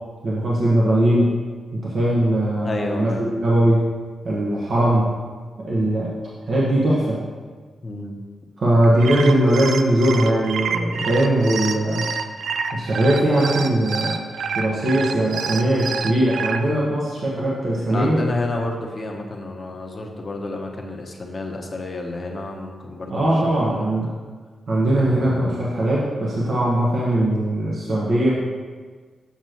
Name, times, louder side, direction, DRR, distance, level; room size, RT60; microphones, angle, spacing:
voice 1, 0.2-1.3 1.8-3.9 4.2-5.1 5.6-6.1 6.5-7.2 8.6-12.0 12.7-14.2 14.5-18.2 23.1-24.1 24.7-28.3, right 1 dB, 60° right, -6 dB, 1.2 m, -20 dB
voice 2, 2.6-3.3 7.8-8.2 17.9-23.9 24.9-25.7, left 2 dB, 35° left, 1 dB, 1.0 m, -30 dB
sound 1, 8.8-16.6, right 6 dB, 75° right, 0.4 m, -28 dB
7.1 x 6.5 x 3.0 m, 1.5 s
cardioid pair, 80°, 0 cm